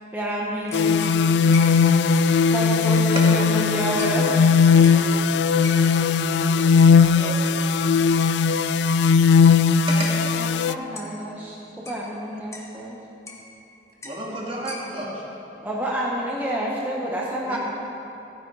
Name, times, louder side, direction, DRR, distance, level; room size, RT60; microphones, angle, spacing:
voice 1, 0.1-1.1 2.5-4.8 10.1-13.0 15.6-17.6, right 1 dB, 10° right, -5 dB, 1.2 m, -29 dB
sound 1, 0.7-10.7, left 5 dB, 70° left, 0.3 m, -18 dB
sound 2, 0.7-3.7 4.0-4.4 4.8-5.1 5.6-6.1 6.8-7.0 7.4-9.7 10.0-10.2 10.6-10.7 10.9-11.2 11.8-12.7 13.3-13.7 14.0-14.2 14.5-15.1, left 2 dB, 15° left, 1.3 m, -41 dB
voice 2, 3.5-9.3, right 1 dB, 55° right, -2 dB, 1.6 m, -42 dB
voice 3, 14.0-15.2 17.4-17.6, right 1 dB, 30° right, -3 dB, 2.2 m, -31 dB
14.5 x 9.4 x 4.8 m, 2.9 s
head